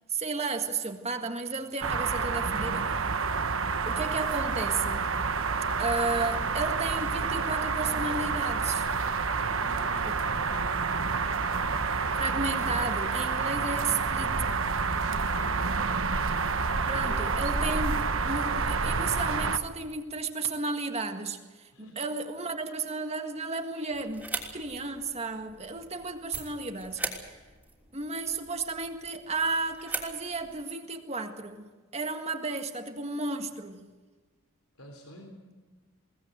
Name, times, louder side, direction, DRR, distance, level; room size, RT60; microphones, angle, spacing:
voice 1, 0.1-3.1 3.8-5.2 5.8-8.9 10.0-10.1 12.2-14.4 16.9-27.3 27.9-33.9, right 3 dB, 30° right, 1.7 m, -33 dB
sound 1, 1.8-19.6, right 4 dB, 65° right, 1.2 m, -29 dB
voice 2, 9.4-11.6 14.1-14.4 15.0-16.1 17.0-17.2 21.7-22.1 34.8-35.6, equal, 90° left, 3.7 m, -48 dB
sound 2, 23.9-30.6, right 3 dB, 10° right, 3.2 m, -41 dB
22.0 x 18.5 x 8.0 m
head